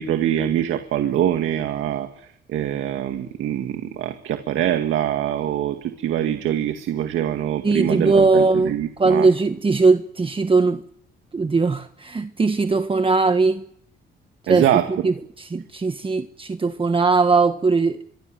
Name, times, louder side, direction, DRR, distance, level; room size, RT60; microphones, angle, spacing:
voice 1, 0.0-9.3 14.5-14.9, right 11 dB, 80° right, 2.1 m, -24 dB
voice 2, 7.6-10.8 11.3-13.6 14.5-18.0, right 4 dB, 25° right, 1.4 m, -19 dB
24.5 x 23.5 x 7.8 m
cardioid pair, 90°, 20 cm